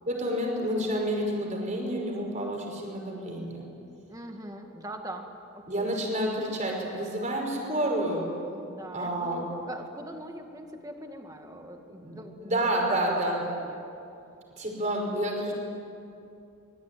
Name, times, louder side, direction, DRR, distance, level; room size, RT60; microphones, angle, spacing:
voice 1, 0.1-3.7 5.7-8.3 8.9-9.4 12.0-13.4 14.6-15.5, right 1 dB, 35° right, 0 dB, 5.5 m, -29 dB
voice 2, 4.1-5.3 5.5-5.9 8.6-12.5 13.0-13.8, right 1 dB, 15° right, 4 dB, 2.0 m, -41 dB
25.0 x 22.0 x 9.4 m, 2.6 s
head